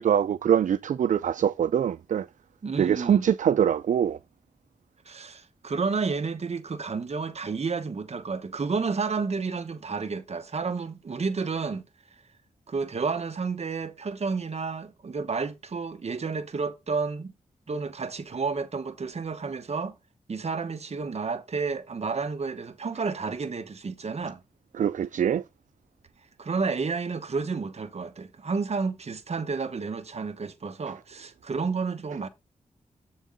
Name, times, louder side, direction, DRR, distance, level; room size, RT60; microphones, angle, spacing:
voice 1, 0.0-2.3 2.8-4.2 24.8-25.4, right 9 dB, 70° right, 0.4 m, -23 dB
voice 2, 2.6-3.3 5.1-11.9 12.7-17.3 17.7-19.9 20.3-24.4 26.4-32.3, right 4 dB, 55° right, 1.2 m, -31 dB
7.4 x 6.4 x 3.9 m
cardioid pair, 75°, 13 cm